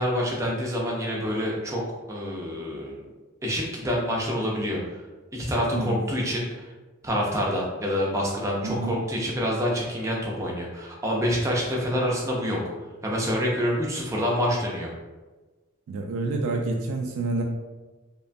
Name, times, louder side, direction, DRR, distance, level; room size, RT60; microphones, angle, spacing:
voice 1, 0.0-1.8 2.1-3.0 3.4-5.0 5.3-6.7 7.0-12.6 13.0-14.9, equal, 15° right, -2 dB, 0.4 m, -27 dB
voice 2, 8.6-9.0 15.9-17.4, right 3 dB, 75° right, 1 dB, 0.3 m, -28 dB
2.8 x 2.2 x 2.5 m, 1.2 s
head